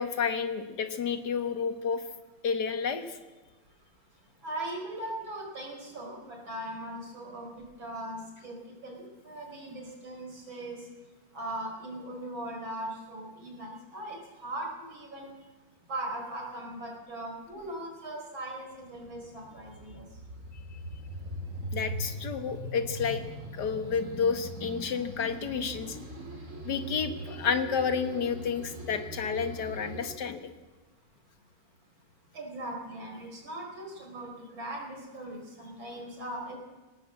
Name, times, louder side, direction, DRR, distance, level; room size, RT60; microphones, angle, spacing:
voice 1, 0.0-2.0 2.4-3.2 21.7-23.2 23.5-26.0 26.6-30.5, left 6 dB, 60° left, 9 dB, 1.9 m, -30 dB
voice 2, 4.4-10.8 11.3-15.3 15.9-20.1 32.3-36.5, right 1 dB, 75° right, 1 dB, 5.4 m, -39 dB
sound 1, 18.8-30.1, right 1 dB, 40° right, 3.1 m, -41 dB
20.0 x 17.5 x 7.7 m, 1.2 s
omnidirectional pair, 2.1 m